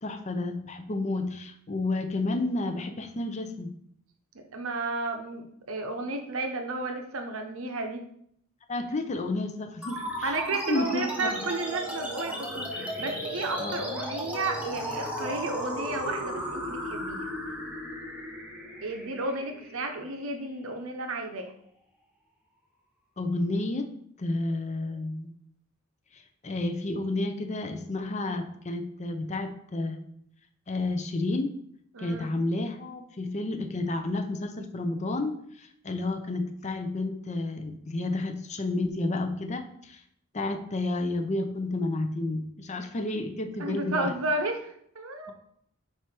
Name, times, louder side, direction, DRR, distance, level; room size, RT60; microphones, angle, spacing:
voice 1, 0.0-3.7 8.7-10.4 10.7-11.5 13.6-13.7 23.2-23.9 24.2-25.3 26.1-30.0 30.7-31.6 32.0-40.0 40.3-44.1, left 2 dB, 35° left, 7 dB, 0.6 m, -31 dB
voice 2, 4.5-8.0 10.2-17.3 18.8-21.5 31.9-32.3 43.6-45.3, right 2 dB, 75° right, 5 dB, 0.9 m, -32 dB
sound 1, 9.8-20.8, equal, 5° right, 1.0 m, -35 dB
4.7 x 4.7 x 4.4 m, 0.69 s
head